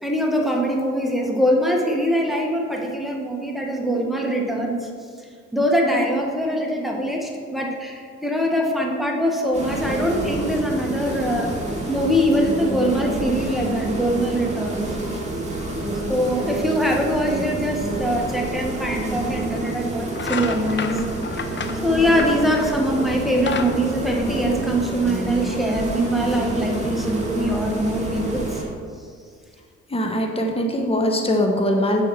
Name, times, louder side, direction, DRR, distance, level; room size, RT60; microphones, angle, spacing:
voice 1, 0.0-4.9 5.5-11.5 11.9-14.9 16.0-21.0 21.8-28.6, equal, ahead, 0 dB, 1.5 m, -23 dB
sound 1, 9.5-28.6, right 2 dB, 25° right, 2.0 m, -28 dB
sound 2, 19.5-19.8 20.1-22.8 23.2-24.9, left 6 dB, 40° left, 0.7 m, -31 dB
voice 2, 29.9-32.0, equal, 20° left, 2 dB, 1.1 m, -21 dB
7.2 x 4.8 x 6.3 m, 2.1 s
cardioid pair, 75°, 30 cm